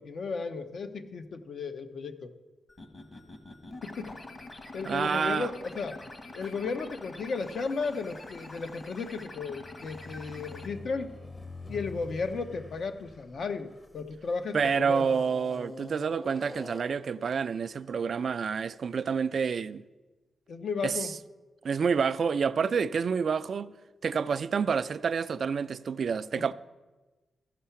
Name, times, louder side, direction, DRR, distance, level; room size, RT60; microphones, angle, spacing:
voice 1, 0.0-2.3 3.8-4.2 4.7-6.0 6.3-11.2 11.7-15.1 20.5-21.1 26.3-26.5, left 4 dB, 65° left, 0.7 m, -34 dB
sound 1, 2.7-10.7, left 2 dB, 45° left, 1.2 m, -46 dB
voice 2, 4.9-5.5 14.5-19.8 20.8-21.1 21.6-23.7 24.0-26.5, right 6 dB, 60° right, 0.3 m, -28 dB
sound 2, 9.5-14.3 14.9-17.1, left 2 dB, 25° left, 0.8 m, -45 dB
14.5 x 5.6 x 5.7 m
cardioid pair, 70°, 0 cm